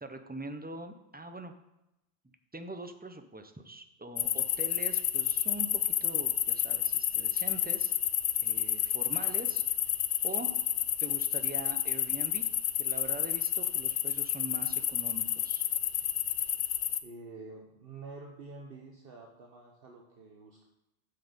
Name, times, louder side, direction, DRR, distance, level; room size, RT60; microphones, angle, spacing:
voice 1, 0.0-1.5 2.5-7.9 8.4-9.6 10.2-10.6 11.0-12.5 12.8-15.6, right 2 dB, 15° right, 7 dB, 0.4 m, -43 dB
sound 1, 4.2-17.0, left 10 dB, 60° left, 0.6 m, -30 dB
voice 2, 17.0-20.6, right 3 dB, 60° right, 0 dB, 1.2 m, -48 dB
8.3 x 6.5 x 5.1 m, 0.90 s
omnidirectional pair, 1.1 m